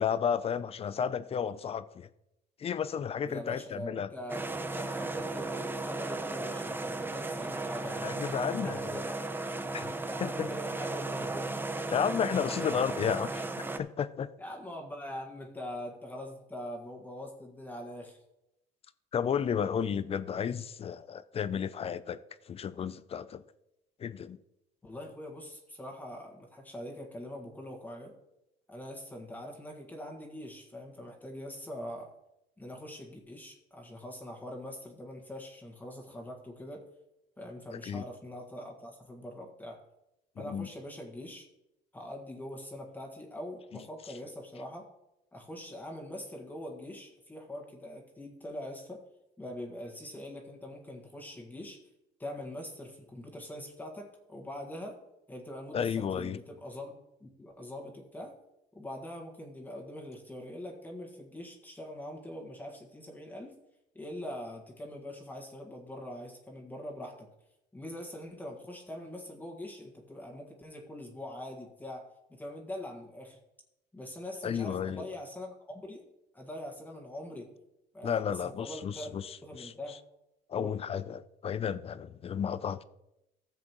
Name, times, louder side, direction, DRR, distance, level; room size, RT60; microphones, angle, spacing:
voice 1, 0.0-2.1 2.6-4.1 8.0-8.8 9.7-9.9 10.2-10.5 11.9-13.5 13.8-14.3 19.1-22.2 22.5-23.4 24.0-24.4 37.7-38.0 40.4-40.7 55.7-56.4 74.4-75.1 78.0-79.7 80.5-82.8, left 7 dB, 35° left, 0.5 m, -32 dB
voice 2, 3.2-8.1 8.5-9.4 10.0-11.6 12.3-12.4 14.4-18.2 24.8-28.1 28.7-32.1 32.6-36.8 37.4-39.8 40.4-41.5 41.9-44.9 45.3-49.0 49.4-51.8 52.2-55.0 55.3-58.3 58.7-63.5 63.9-67.3 67.7-73.4 73.9-76.0 76.3-77.5 77.9-79.1 79.4-80.0 80.5-80.8, left 1 dB, 10° left, 1.7 m, -43 dB
sound 1, 4.3-13.8, right 2 dB, 10° right, 0.6 m, -35 dB
14.5 x 7.5 x 3.0 m
cardioid pair, 110°, 17 cm